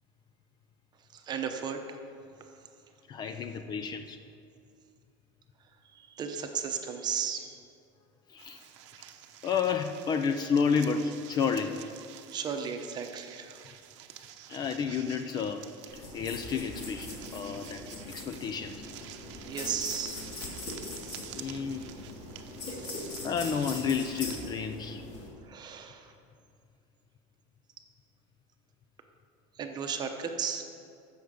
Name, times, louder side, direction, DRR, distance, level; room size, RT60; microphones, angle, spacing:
voice 1, 1.1-2.0 5.9-7.5 12.3-13.6 19.4-20.3 22.7-23.1 25.5-26.1 29.6-30.6, right 7 dB, 30° right, 5 dB, 0.9 m, -35 dB
voice 2, 3.1-4.2 8.3-8.6 9.4-11.8 14.5-15.7 15.9-17.8 18.1-18.8 21.4-21.9 22.7-22.8 23.2-25.0, left 6 dB, 30° left, 8 dB, 0.4 m, -31 dB
sound 1, 8.4-24.5, right 11 dB, 85° right, 0.8 m, -49 dB
sound 2, 15.9-25.3, left 2 dB, 55° left, 2.7 m, -41 dB
14.5 x 6.4 x 5.0 m, 2.4 s
cardioid pair, 155°, 15 cm